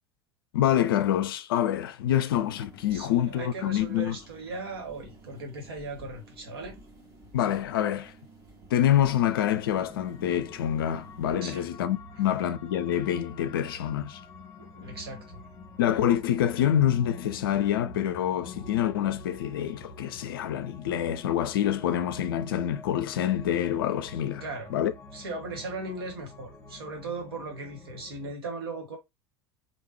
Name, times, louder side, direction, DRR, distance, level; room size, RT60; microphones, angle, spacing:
voice 1, 0.5-4.2 7.3-8.1 8.7-14.2 15.8-24.4 24.7-24.9, left 11 dB, 65° left, 0.4 m, -26 dB
sound 1, 2.3-11.3, right 2 dB, 25° right, 1.6 m, -52 dB
voice 2, 2.9-6.8 11.4-11.7 14.6-15.5 24.4-24.7 25.1-29.0, right 3 dB, 70° right, 1.5 m, -38 dB
sound 2, 9.0-28.3, left 3 dB, 20° left, 1.5 m, -46 dB
3.6 x 2.4 x 3.1 m
figure-of-eight pair, 75°, 13 cm